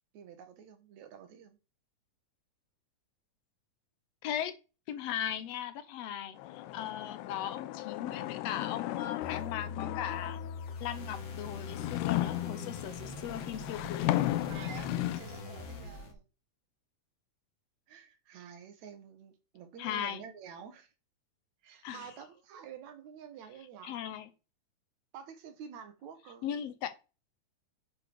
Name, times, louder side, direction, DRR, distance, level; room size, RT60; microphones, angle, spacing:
voice 1, 0.1-1.6 14.5-16.3 17.9-20.9 21.6-24.0 25.1-26.5, right 7 dB, 70° right, 2.7 m, -49 dB
voice 2, 4.2-4.5 4.9-10.4 10.8-14.1 19.8-20.2 21.8-22.1 23.8-24.3 26.4-26.9, left 10 dB, 70° left, 1.7 m, -38 dB
sound 1, 6.4-10.7 11.3-15.2, left 15 dB, 85° left, 2.1 m, -35 dB
sound 2, 9.2-16.1, left 4 dB, 45° left, 2.1 m, -42 dB
9.6 x 4.9 x 4.6 m
omnidirectional pair, 3.5 m